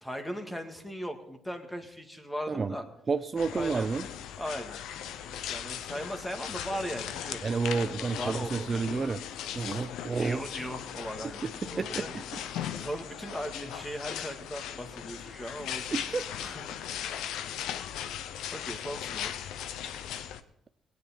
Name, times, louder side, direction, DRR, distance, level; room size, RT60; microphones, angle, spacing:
voice 1, 0.0-2.8 3.5-3.9 4.4-7.5 7.8-8.8 10.2-12.1 12.5-16.6 18.5-19.3, equal, 10° left, 6 dB, 1.8 m, -38 dB
voice 2, 3.1-4.1 7.4-9.2 9.5-10.4 11.4-12.2 15.9-16.2, right 4 dB, 35° right, 9 dB, 0.5 m, -30 dB
sound 1, 3.4-20.4, left 10 dB, 85° left, 0.7 m, -38 dB
18.0 x 9.5 x 4.3 m, 0.78 s
cardioid pair, 90°, 0 cm